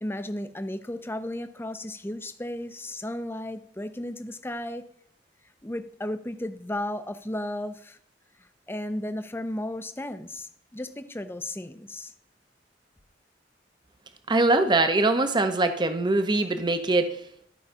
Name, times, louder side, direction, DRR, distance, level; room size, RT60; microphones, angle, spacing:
voice 1, 0.0-4.9 5.6-8.0 8.4-12.1, left 1 dB, 15° left, 10 dB, 0.6 m, -34 dB
voice 2, 14.3-17.2, right 2 dB, 25° right, 8 dB, 0.7 m, -22 dB
12.0 x 4.8 x 5.5 m, 0.64 s
head